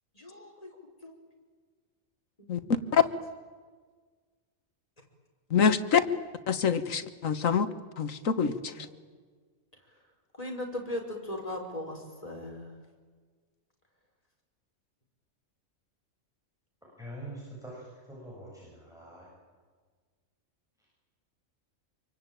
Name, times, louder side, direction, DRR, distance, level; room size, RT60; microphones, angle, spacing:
voice 1, 0.1-0.7 1.0-1.1 2.5-2.7 10.3-12.7, left 1 dB, 25° left, 1 dB, 5.4 m, -38 dB
voice 2, 5.5-6.0 6.5-7.7 8.0-8.5, left 7 dB, 70° left, 11 dB, 1.7 m, -25 dB
voice 3, 17.0-19.3, right 1 dB, ahead, -6 dB, 8.0 m, -44 dB
26.5 x 23.5 x 9.1 m, 1.5 s
omnidirectional pair, 1.4 m